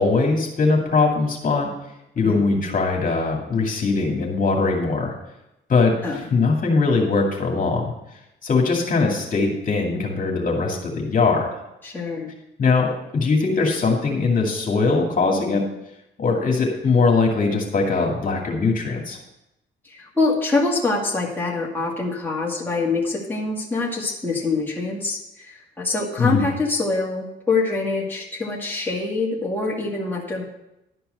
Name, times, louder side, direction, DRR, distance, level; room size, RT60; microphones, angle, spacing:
voice 1, 0.0-1.7 2.2-5.1 5.7-7.9 8.4-11.5 12.6-15.6 16.2-19.2 26.2-26.4, left 4 dB, 45° left, 0 dB, 2.3 m, -21 dB
voice 2, 11.8-12.3 19.8-30.4, left 3 dB, 10° left, -4 dB, 2.2 m, -25 dB
11.5 x 4.6 x 7.7 m, 0.89 s
cardioid pair, 90°, 20 cm